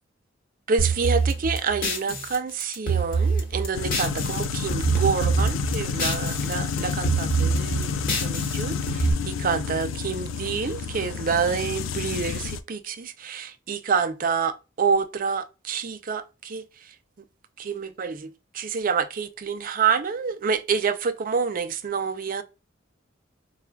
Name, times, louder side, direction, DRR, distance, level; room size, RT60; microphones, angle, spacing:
voice 1, 0.7-16.6 17.6-18.3 18.5-22.4, right 5 dB, 45° right, 0.5 m, -27 dB
sound 1, 0.8-4.4 4.7-6.5 6.8-9.1, right 4 dB, 50° left, 1.2 m, -25 dB
sound 2, 3.7-12.6, left 5 dB, 75° left, 0.4 m, -30 dB
4.3 x 2.4 x 2.2 m
head